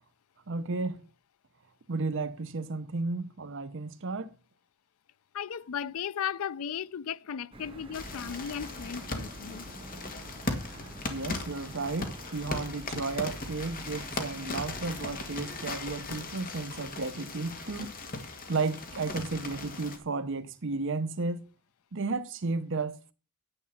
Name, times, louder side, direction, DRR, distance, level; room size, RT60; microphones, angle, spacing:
voice 1, 0.5-1.0 1.9-4.3 11.1-18.0 18.5-21.5 21.9-23.1, right 3 dB, 60° right, 0.8 m, -33 dB
voice 2, 5.3-9.7, left 8 dB, 75° left, 0.4 m, -36 dB
sound 1, 7.5-15.8, right 1 dB, 25° right, 2.3 m, -47 dB
sound 2, 7.9-20.0, left 2 dB, 40° left, 1.9 m, -38 dB
10.0 x 8.3 x 5.6 m
head